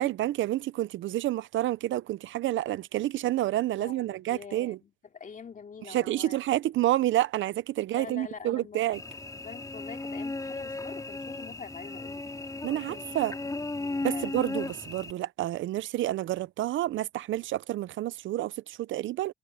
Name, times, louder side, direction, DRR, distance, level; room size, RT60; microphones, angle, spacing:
voice 1, 0.0-4.8 5.9-9.0 12.6-13.3 14.0-19.3, right 14 dB, 75° right, 0.6 m, -29 dB
voice 2, 3.8-6.4 6.8-6.9 7.9-8.8 9.4-13.1 13.4-14.3, left 6 dB, 40° left, 2.7 m, -45 dB
Cricket / Buzz, 8.9-15.1, left 2 dB, 15° left, 3.8 m, -36 dB
cardioid pair, 90°, 20 cm